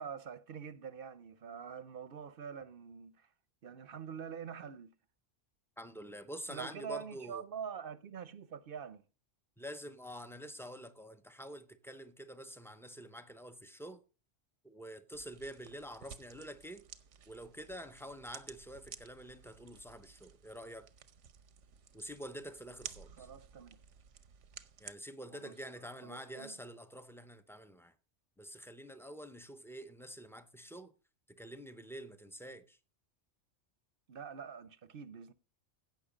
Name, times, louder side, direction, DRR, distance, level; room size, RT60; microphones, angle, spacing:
voice 1, 0.0-3.3 3.6-4.9 6.5-9.0 23.2-23.8 25.3-26.5 34.1-35.3, right 7 dB, 55° right, 0.8 m, -45 dB
voice 2, 5.8-7.4 9.6-14.0 14.6-16.8 17.3-20.9 21.9-23.3 24.8-27.9 28.4-30.9 31.3-32.8, equal, 5° left, 0.5 m, -47 dB
sound 1, 15.1-24.9, right 8 dB, 90° right, 1.2 m, -54 dB
16.0 x 6.0 x 5.0 m
omnidirectional pair, 1.2 m